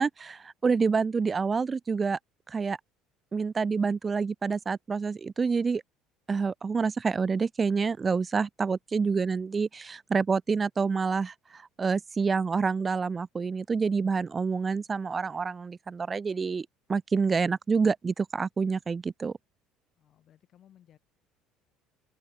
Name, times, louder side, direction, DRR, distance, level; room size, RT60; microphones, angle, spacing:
voice 1, 0.0-2.2 2.5-2.8 3.3-5.8 6.3-19.3, right 5 dB, 25° right, 0.4 m, -28 dB
voice 2, 20.0-21.0, left 11 dB, 55° left, 4.3 m, -59 dB
supercardioid pair, 90°, 0 cm